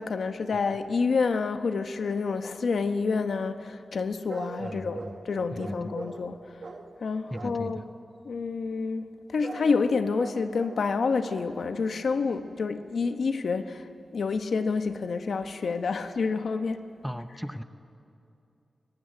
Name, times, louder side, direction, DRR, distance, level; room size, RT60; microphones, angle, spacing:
voice 1, 0.0-6.6 7.0-7.9 8.2-16.8, left 4 dB, 65° left, 8 dB, 1.0 m, -28 dB
sound 1, 4.3-5.2 5.6-6.3 6.6-6.9 7.3-7.7 9.4-9.7 10.2-10.9 11.2-11.6 12.0-12.1, right 3 dB, 45° right, 1.6 m, -40 dB
voice 2, 4.6-5.2 5.5-6.0 7.3-7.9 17.0-17.6, equal, ahead, 9 dB, 0.6 m, -37 dB
24.5 x 19.5 x 9.2 m, 2.6 s
wide cardioid pair, 175°, 0 cm